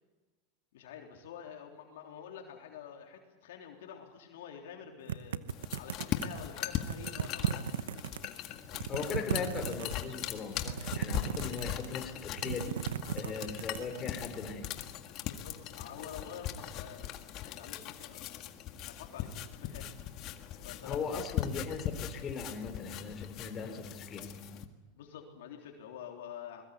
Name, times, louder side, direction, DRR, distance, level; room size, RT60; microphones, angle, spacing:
voice 1, 0.7-5.4 5.7-8.0 13.1-13.4 15.2-18.4 18.9-19.9 20.6-21.2 25.0-26.6, left 8 dB, 75° left, 2 dB, 3.6 m, -48 dB
sound 1, 5.1-6.4 6.8-8.3 8.7-10.1 10.6-12.0 12.3-14.1, right 9 dB, 85° right, 0.9 m, -36 dB
sound 2, 5.5-24.7, left 11 dB, 50° left, 1.8 m, -40 dB
voice 2, 8.9-12.8 13.1-14.8 20.8-24.3, left 5 dB, 30° left, 4 dB, 4.1 m, -39 dB
22.5 x 21.5 x 8.4 m, 1.2 s
hypercardioid pair, 110°, 0 cm